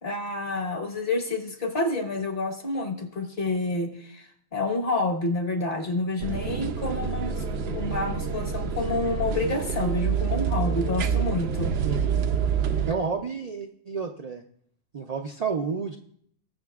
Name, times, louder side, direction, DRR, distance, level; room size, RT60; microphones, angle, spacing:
voice 1, 0.0-11.7, left 2 dB, 50° left, 2 dB, 1.4 m, -29 dB
sound 1, 6.2-12.9, right 6 dB, 70° right, 0.8 m, -27 dB
voice 2, 12.9-14.4 14.9-16.0, right 5 dB, 50° right, 2 dB, 0.5 m, -30 dB
20.5 x 6.8 x 2.4 m, 0.66 s
omnidirectional pair, 1.2 m